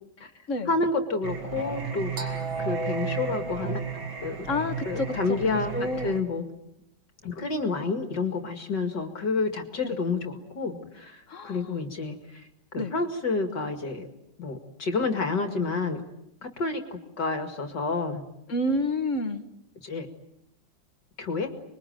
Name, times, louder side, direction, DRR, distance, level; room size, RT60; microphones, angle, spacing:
voice 1, 0.7-3.8 4.2-4.5 4.8-5.7 6.0-6.4 7.2-14.1 14.4-16.0 16.4-18.2 19.8-20.1 21.2-21.5, left 3 dB, 60° left, 5 dB, 2.7 m, -29 dB
Singing, 1.2-6.2, right 5 dB, 85° right, 3.3 m, -33 dB
voice 2, 4.5-6.1 11.3-11.6 12.8-12.9 18.5-19.4, left 1 dB, 40° left, 8 dB, 1.9 m, -29 dB
27.0 x 22.5 x 9.2 m, 0.82 s
omnidirectional pair, 2.1 m